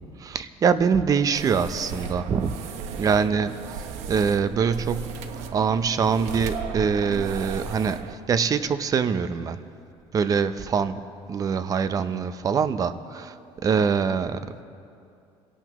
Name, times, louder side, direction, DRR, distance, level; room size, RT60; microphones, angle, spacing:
voice 1, 0.2-2.5 3.0-3.8 4.1-9.6 10.1-14.5, right 6 dB, 30° right, 12 dB, 0.7 m, -24 dB
sound 1, 1.3-8.1, right 6 dB, 75° right, 1.0 m, -35 dB
27.0 x 17.5 x 3.0 m, 2.5 s
cardioid pair, 140°, 11 cm